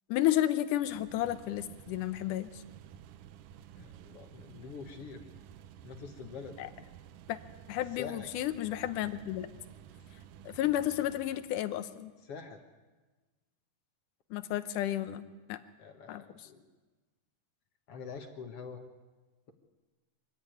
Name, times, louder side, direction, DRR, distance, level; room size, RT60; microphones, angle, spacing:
voice 1, 0.1-2.6 6.6-6.7 7.3-7.4 7.7-9.5 10.5-12.1 14.3-15.6 16.1-16.5, left 13 dB, 80° left, 11 dB, 2.5 m, -32 dB
sound 1, 0.8-11.6, right 10 dB, 80° right, 2.4 m, -53 dB
voice 2, 3.8-5.3 5.8-6.6 7.9-8.3 12.3-12.6 15.8-16.6 17.9-18.8, left 6 dB, 55° left, 5 dB, 2.1 m, -45 dB
24.5 x 15.0 x 9.3 m, 1.3 s
omnidirectional pair, 3.8 m